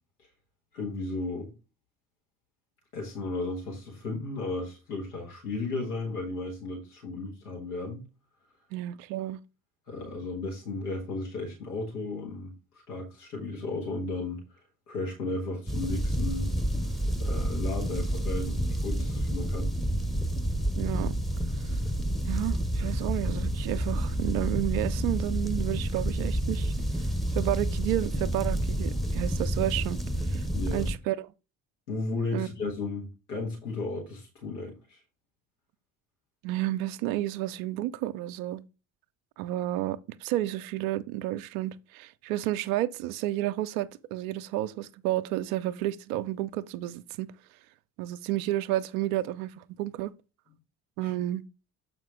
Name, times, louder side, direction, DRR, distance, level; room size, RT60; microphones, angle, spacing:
voice 1, 0.7-1.5 2.9-8.0 9.9-14.4 14.9-16.5 17.2-19.7 30.5-30.8 31.9-35.0 51.0-51.1, left 3 dB, 80° left, 1.8 m, -34 dB
voice 2, 8.7-9.4 20.8-21.1 22.3-26.7 27.3-30.0 30.3-30.4 30.7-31.3 32.3-32.5 36.4-38.6 39.4-47.3 48.0-50.1 51.0-51.4, right 14 dB, 65° right, 0.6 m, -31 dB
sound 1, 15.7-30.9, right 1 dB, ahead, 0.8 m, -29 dB
7.3 x 5.0 x 3.6 m
figure-of-eight pair, 45°, 45 cm